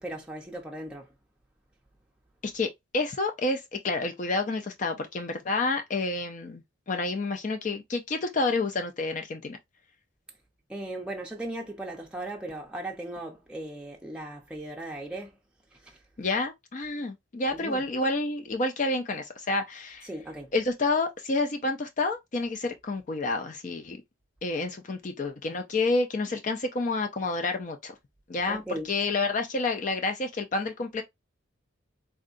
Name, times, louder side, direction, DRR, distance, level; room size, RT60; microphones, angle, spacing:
voice 1, 0.0-1.1 10.7-15.4 15.8-16.0 17.6-17.8 20.0-20.5 28.5-28.9, right 1 dB, 5° right, 0.6 m, -37 dB
voice 2, 2.4-9.6 16.2-20.1 20.5-24.0 24.4-27.9 28.3-28.6 28.9-31.0, left 3 dB, 40° left, 0.4 m, -29 dB
3.6 x 2.2 x 2.5 m
head